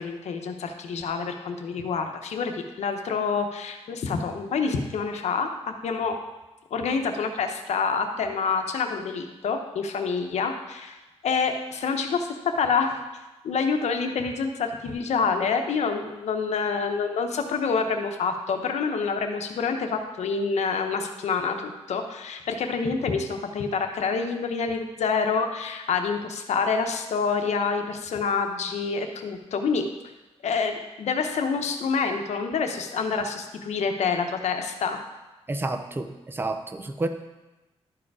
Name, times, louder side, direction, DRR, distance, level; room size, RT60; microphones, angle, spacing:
voice 1, 0.0-6.2 6.7-11.0 11.2-13.0 13.4-29.9 30.4-35.0, left 5 dB, 90° left, 5 dB, 0.9 m, -27 dB
voice 2, 35.5-37.1, right 2 dB, 20° right, 7 dB, 0.6 m, -30 dB
12.0 x 4.9 x 4.8 m, 1.1 s
wide cardioid pair, 120°, 11 cm